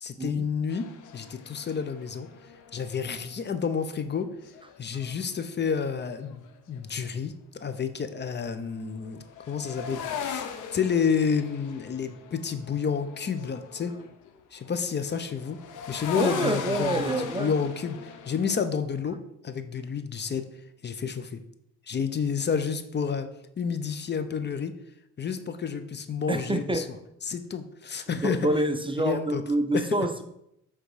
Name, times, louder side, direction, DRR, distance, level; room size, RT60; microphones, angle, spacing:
voice 1, 0.0-0.9 1.1-2.3 2.7-4.3 4.8-13.9 14.5-15.6 15.9-18.0 18.3-19.2 19.4-20.4 20.8-21.4 21.9-23.3 23.6-24.7 25.2-26.8 27.2-28.5 29.0-29.4 29.7-29.9, left 6 dB, 35° left, 10 dB, 0.7 m, -30 dB
sound 1, 0.7-3.6 4.4-7.1 8.7-14.3 14.6-18.6, left 7 dB, 85° left, 0.8 m, -39 dB
voice 2, 16.1-17.5 26.3-26.9 28.2-30.2, right 1 dB, 15° right, 8 dB, 0.5 m, -27 dB
7.9 x 3.7 x 4.8 m, 0.79 s
cardioid pair, 90°, 30 cm